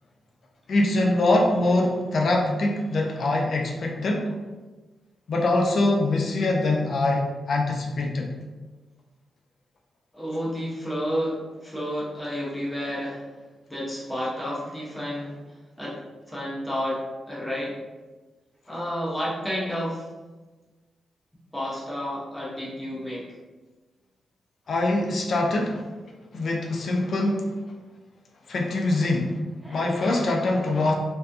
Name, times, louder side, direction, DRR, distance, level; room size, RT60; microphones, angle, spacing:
voice 1, 0.7-4.4 5.3-8.3 24.7-25.9 26.3-27.6 28.5-29.4 29.7-30.9, left 2 dB, 60° left, 1 dB, 0.5 m, -23 dB
voice 2, 10.1-13.3 13.7-15.4 15.8-16.0 16.3-17.8 18.7-20.1 21.5-23.3 29.6-30.2, equal, 5° left, -7 dB, 0.9 m, -31 dB
2.6 x 2.3 x 2.2 m, 1.2 s
cardioid pair, 70°, 0 cm